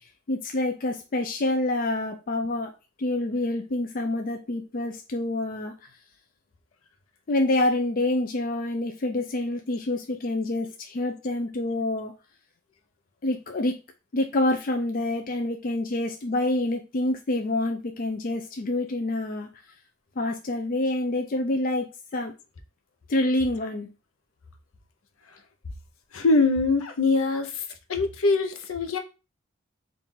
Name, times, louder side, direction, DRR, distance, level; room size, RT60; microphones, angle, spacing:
voice 1, 0.3-2.7 3.0-5.7 7.3-12.1 13.2-13.8 14.1-19.5 20.2-22.3 23.1-23.9, left 2 dB, 40° left, 0.4 m, -27 dB
voice 2, 26.1-27.6 27.9-29.0, left 3 dB, 75° left, 0.7 m, -23 dB
4.2 x 2.5 x 3.7 m
head